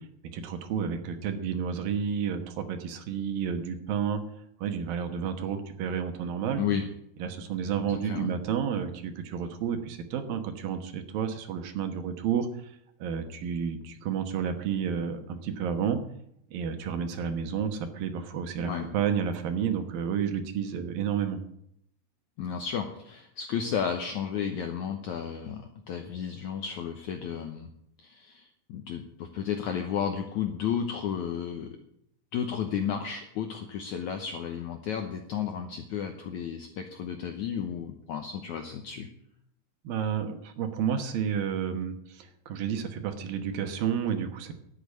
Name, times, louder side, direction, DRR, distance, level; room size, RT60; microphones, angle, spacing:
voice 1, 0.3-4.2 4.6-6.6 7.2-12.7 13.0-16.0 16.5-21.4 39.8-44.5, right 7 dB, 70° right, 7 dB, 2.8 m, -31 dB
voice 2, 7.9-8.3 18.6-18.9 22.4-27.7 28.0-31.8 32.3-39.1, left 8 dB, 75° left, 5 dB, 1.8 m, -33 dB
11.5 x 8.8 x 8.4 m, 0.74 s
omnidirectional pair, 4.6 m